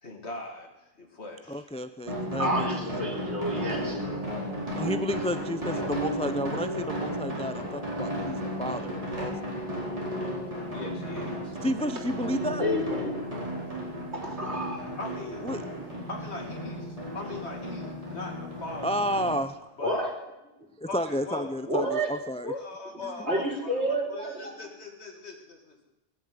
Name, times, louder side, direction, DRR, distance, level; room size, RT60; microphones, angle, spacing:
voice 1, 0.0-1.7 5.7-6.0 10.7-11.6 15.0-15.5 16.1-19.0 19.8-20.0 20.8-21.5 22.4-25.8, left 2 dB, 75° left, 2 dB, 2.7 m, -40 dB
voice 2, 1.5-2.9 4.7-9.6 11.6-12.7 15.4-15.6 18.8-19.7 20.8-22.5, equal, 10° left, 10 dB, 0.4 m, -31 dB
sound 1, 2.1-19.3, equal, 30° right, 4.5 m, -34 dB
voice 3, 2.4-4.0 12.6-13.4 14.2-14.8 19.8-20.1 21.6-22.1 23.2-24.5, equal, 75° right, 0 dB, 3.7 m, -29 dB
20.0 x 7.3 x 9.5 m, 0.97 s
omnidirectional pair, 1.1 m